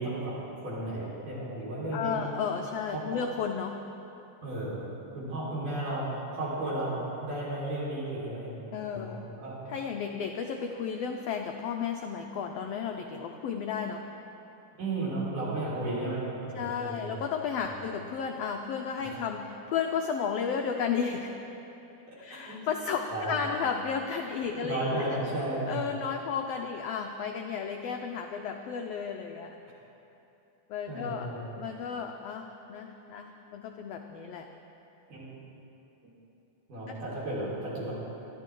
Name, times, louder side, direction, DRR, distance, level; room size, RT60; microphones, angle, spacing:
voice 1, 0.0-2.2 2.9-3.0 4.4-4.8 5.1-8.5 8.9-9.1 9.4-9.6 14.8-17.2 17.7-17.8 19.1-19.2 22.1-22.2 22.4-22.6 23.1-23.4 24.5-25.8 30.9-31.4 35.1-35.3 36.7-37.9, right 2 dB, 80° right, -7 dB, 5.8 m, -34 dB
voice 2, 1.9-3.9 8.7-9.3 9.7-14.0 16.5-21.4 22.2-25.1 25.7-29.6 30.7-31.3 31.6-34.5 36.9-37.0, left 6 dB, 90° left, 4 dB, 1.4 m, -33 dB
21.5 x 13.5 x 3.8 m, 2.9 s
omnidirectional pair, 3.7 m